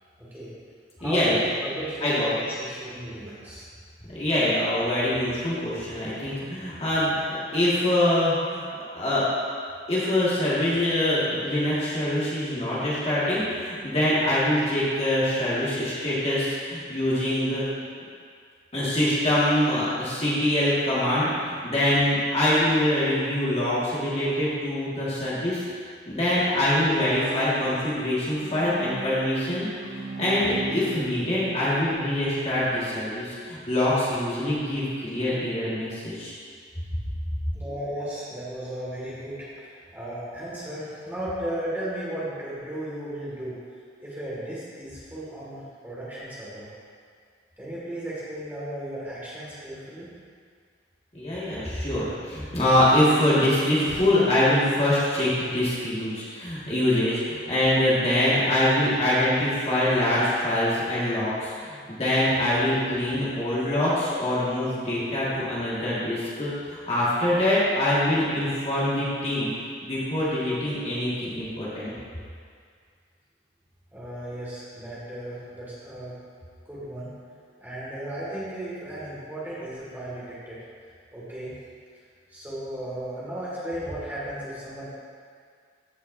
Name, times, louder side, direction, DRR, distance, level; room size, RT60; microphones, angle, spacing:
voice 1, 0.2-0.5 1.0-3.7 37.5-43.6 44.0-46.7 47.6-50.1 73.9-76.2 76.7-77.1 77.6-80.6 81.1-81.5 82.3-84.9, right 1 dB, 10° right, -9 dB, 2.1 m, -35 dB
voice 2, 1.0-1.3 2.0-2.3 4.1-8.6 9.0-9.2 9.9-17.6 18.7-25.6 26.1-29.7 29.9-36.3 51.1-69.5 69.8-71.9, left 1 dB, 30° left, -9 dB, 1.8 m, -24 dB
Bowed string instrument, 26.5-32.6, right 3 dB, 40° right, 0.9 m, -39 dB
14.5 x 5.6 x 2.7 m, 2.1 s
head